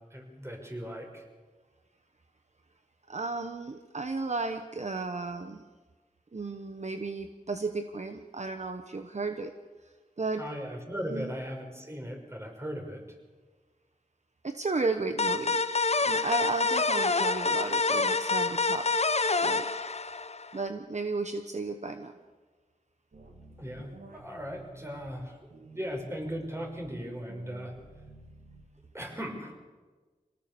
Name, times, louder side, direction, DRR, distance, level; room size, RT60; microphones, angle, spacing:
voice 1, 0.1-1.2 10.4-13.0 23.6-25.4 25.7-27.7 28.9-29.5, equal, 15° right, 2 dB, 5.8 m, -38 dB
voice 2, 3.1-5.6 6.3-9.5 9.8-10.4 11.1-11.3 14.4-15.6 16.0-18.9 19.4-19.6 20.5-22.1, right 3 dB, 50° right, 7 dB, 1.2 m, -34 dB
sound 1, 15.2-20.6, left 3 dB, 45° left, 1.0 m, -27 dB
sound 2, 23.1-25.1 25.5-26.9 27.3-28.9, right 1 dB, 85° right, 3.1 m, -51 dB
24.5 x 18.5 x 7.0 m, 1.3 s
cardioid pair, 50°, 15 cm